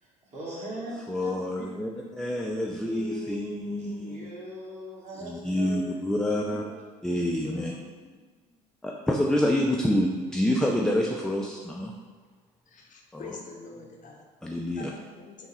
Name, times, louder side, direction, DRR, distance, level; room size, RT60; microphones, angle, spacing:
voice 1, 0.0-0.9 1.2-2.0 2.6-6.8 13.7-14.1, right 1 dB, 35° right, -6 dB, 1.4 m, -41 dB
voice 2, 1.1-1.9 2.2-4.2 5.2-6.6 7.0-7.7 8.8-11.9 13.1-13.4 14.4-14.9, left 1 dB, 5° left, -1 dB, 0.3 m, -27 dB
voice 3, 7.4-8.1 12.7-14.2 14.8-15.5, left 4 dB, 40° left, 0 dB, 0.6 m, -45 dB
3.5 x 2.0 x 4.0 m, 1.5 s
hypercardioid pair, 60°, 19 cm